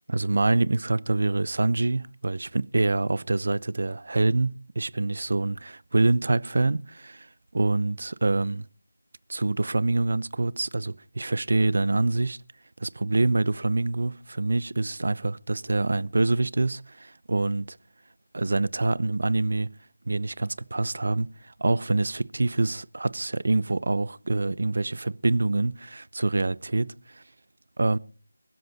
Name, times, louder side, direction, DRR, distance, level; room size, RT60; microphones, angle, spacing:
voice 1, 0.1-8.7 9.3-12.4 12.8-17.8 18.3-19.7 20.1-27.2 27.8-28.0, right 2 dB, 60° right, 0.7 m, -26 dB
21.5 x 13.5 x 4.1 m
figure-of-eight pair, 170°, 0 cm